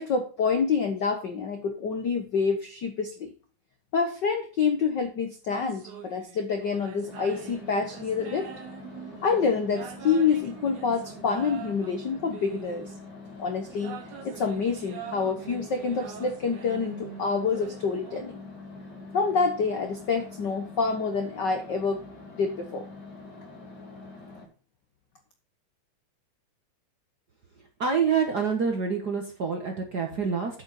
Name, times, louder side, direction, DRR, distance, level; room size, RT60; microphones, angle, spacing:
voice 1, 0.0-3.3 3.9-8.5 9.2-12.9 13.4-14.0 14.2-18.5 19.1-22.0 22.4-22.9, left 5 dB, 75° left, 6 dB, 1.0 m, -27 dB
sound 1, 5.5-13.1 13.7-18.2, right 9 dB, 70° right, 3.1 m, -43 dB
sound 2, 7.0-24.4, left 3 dB, 35° left, 2.9 m, -45 dB
voice 2, 27.8-30.6, right 6 dB, 50° right, 3 dB, 1.3 m, -27 dB
9.0 x 8.0 x 4.2 m, 0.37 s
omnidirectional pair, 3.6 m